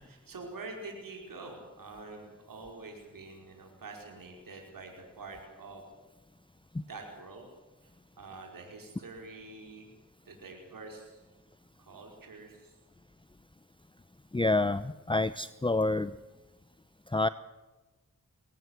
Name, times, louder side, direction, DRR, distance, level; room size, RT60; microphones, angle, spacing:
voice 1, 0.0-5.9 6.9-7.5 7.8-7.9 8.2-9.9 10.2-11.2 11.8-12.8, right 3 dB, 85° right, 1 dB, 5.0 m, -46 dB
voice 2, 14.3-16.1 17.1-17.3, left 2 dB, 15° left, 14 dB, 0.8 m, -28 dB
22.0 x 17.5 x 8.0 m, 1.2 s
cardioid pair, 50°, 33 cm